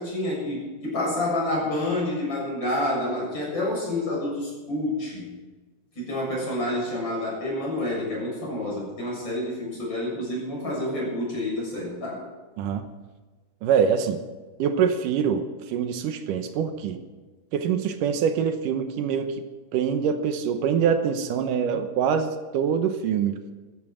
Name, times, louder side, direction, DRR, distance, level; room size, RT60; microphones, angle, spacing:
voice 1, 0.0-5.2 5.9-12.2, left 1 dB, 35° left, -4 dB, 7.9 m, -28 dB
voice 2, 13.6-14.2 14.6-17.0 17.5-19.4 19.7-23.4, right 7 dB, 80° right, 8 dB, 2.6 m, -24 dB
14.5 x 14.5 x 6.2 m, 1.3 s
omnidirectional pair, 3.7 m